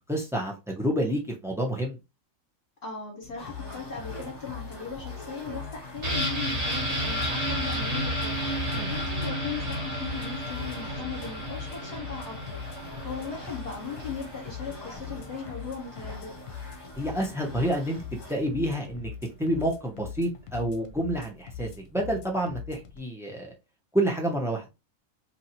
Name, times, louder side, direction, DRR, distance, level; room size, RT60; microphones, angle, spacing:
voice 1, 0.1-2.0 8.7-8.9 17.0-19.1 19.4-23.5 23.9-24.7, right 1 dB, 5° right, 0.4 m, -29 dB
voice 2, 2.8-12.6 13.0-16.3, left 6 dB, 50° left, 1.3 m, -38 dB
sound 1, 3.2-23.0, left 7 dB, 80° left, 1.0 m, -42 dB
sound 2, 3.4-18.5, left 1 dB, 25° left, 0.7 m, -46 dB
sound 3, 6.0-15.7 16.0-16.1, equal, 60° right, 1.6 m, -32 dB
3.0 x 2.7 x 2.7 m
omnidirectional pair, 1.4 m